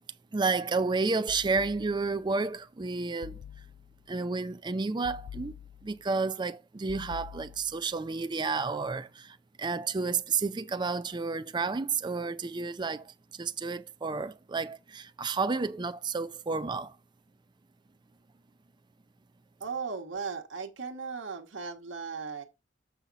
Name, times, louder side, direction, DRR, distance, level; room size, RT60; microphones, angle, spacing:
voice 1, 0.3-3.4 4.1-5.5 5.8-17.0, right 4 dB, 25° right, 0.4 m, -31 dB
sound 1, 1.3-2.3 3.2-4.1 5.0-6.1 6.9-8.0, left 9 dB, 90° left, 0.3 m, -46 dB
voice 2, 19.6-22.4, right 5 dB, 80° right, 1.2 m, -37 dB
7.2 x 5.7 x 4.0 m
head